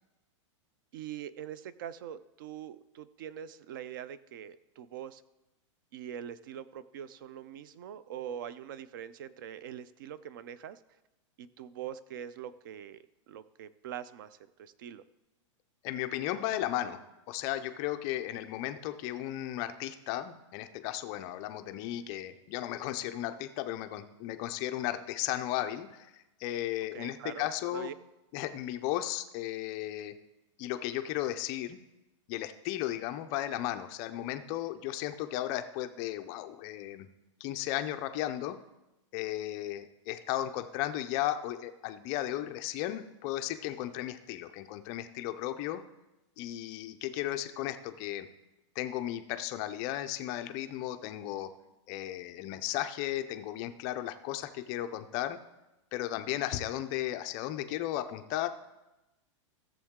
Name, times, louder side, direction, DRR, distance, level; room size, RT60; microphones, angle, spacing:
voice 1, 0.9-5.2 5.9-10.8 11.4-15.0 26.9-27.9, right 9 dB, 40° right, 16 dB, 0.4 m, -43 dB
voice 2, 15.8-17.0 17.3-27.9 28.3-30.1 30.6-31.8 32.3-37.1 37.4-38.6 39.1-45.8 46.4-48.3 48.8-51.5 51.9-55.4 55.9-58.5, left 13 dB, 20° left, 8 dB, 0.4 m, -35 dB
14.5 x 7.2 x 3.6 m, 0.99 s
supercardioid pair, 170°, 16 cm